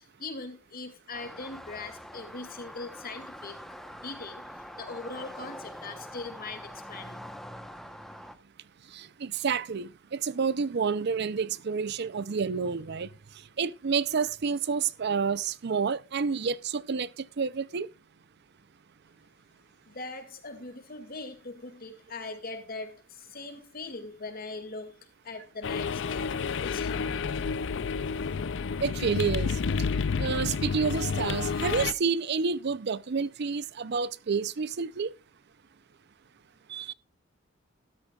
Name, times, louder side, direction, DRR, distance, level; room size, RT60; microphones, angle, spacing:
voice 1, 0.0-3.6 3.8-7.2 19.9-27.3, left 3 dB, 50° left, 2.4 m, -41 dB
sound 1, 1.1-8.3, equal, ahead, 1.0 m, -44 dB
voice 2, 8.9-13.1 13.6-17.9 28.8-29.6 30.2-35.1 36.7-36.9, right 5 dB, 60° right, 0.5 m, -29 dB
sound 2, 25.6-31.9, left 5 dB, 65° left, 0.5 m, -30 dB
13.0 x 12.5 x 2.4 m
head